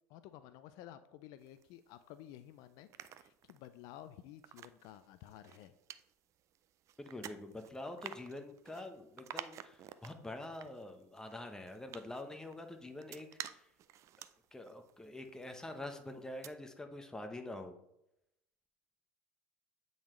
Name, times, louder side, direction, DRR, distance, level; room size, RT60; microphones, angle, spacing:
voice 1, 0.1-2.9 3.1-5.7, left 12 dB, 65° left, 12 dB, 0.4 m, -53 dB
sound 1, 1.4-2.3 2.7-15.9 16.2-16.5, right 11 dB, 50° right, 0.4 m, -52 dB
voice 2, 7.0-13.7 14.5-17.8, left 2 dB, 10° left, 5 dB, 0.9 m, -46 dB
8.5 x 3.9 x 3.1 m, 0.82 s
supercardioid pair, 90°, 7 cm